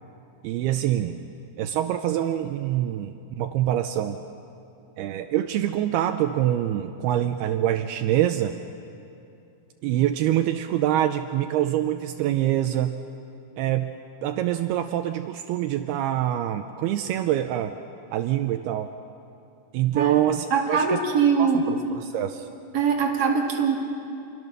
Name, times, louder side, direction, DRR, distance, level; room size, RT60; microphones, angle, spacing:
voice 1, 0.4-1.2 1.6-4.2 5.0-8.6 9.8-12.9 13.6-13.9 14.2-17.7 18.1-18.9 19.7-21.0 21.4-21.5 21.9-22.5, right 12 dB, 80° right, 7 dB, 2.5 m, -25 dB
voice 2, 20.5-21.8 22.7-23.8, right 6 dB, 30° right, -1 dB, 2.2 m, -22 dB
27.5 x 23.5 x 6.7 m, 2.6 s
omnidirectional pair, 4.9 m